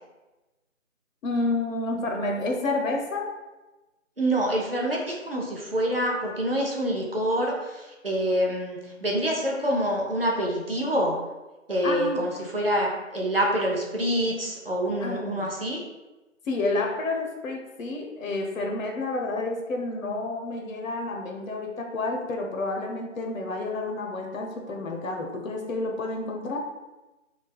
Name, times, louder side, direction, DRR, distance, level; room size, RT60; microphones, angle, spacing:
voice 1, 1.2-3.3 11.8-12.3 15.0-15.5 16.5-26.6, left 2 dB, 85° left, 2 dB, 0.6 m, -30 dB
voice 2, 4.2-11.2 11.7-15.8, right 1 dB, 50° right, -1 dB, 0.4 m, -26 dB
3.1 x 2.1 x 2.2 m, 1.1 s
figure-of-eight pair, 180°, 39 cm